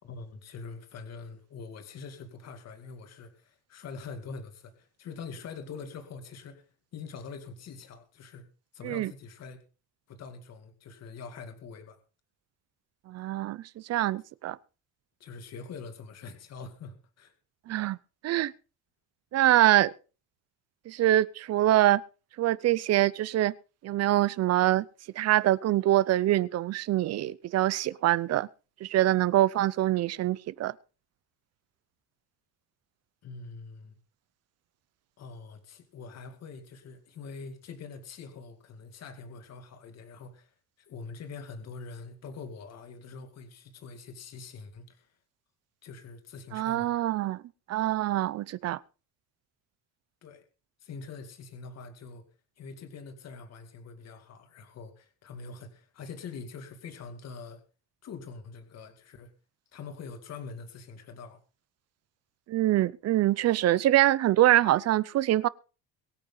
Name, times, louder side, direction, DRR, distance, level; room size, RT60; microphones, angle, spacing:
voice 1, 0.0-8.4 8.7-9.6 10.1-12.0 15.2-17.3 33.2-34.0 35.2-45.2 45.8-46.9 50.2-50.4 50.8-52.2 52.6-57.6 58.0-59.3 59.7-61.4, left 4 dB, 40° left, 2.4 m, -44 dB
voice 2, 13.1-13.6 13.9-14.6 17.7-18.0 18.2-18.5 19.3-19.9 20.9-22.0 22.4-23.5 23.8-24.8 25.2-28.5 28.8-30.7 46.5-47.4 47.7-48.8 62.5-65.5, right 14 dB, 40° right, 0.6 m, -24 dB
23.0 x 8.8 x 3.9 m
cardioid pair, 170°, 39 cm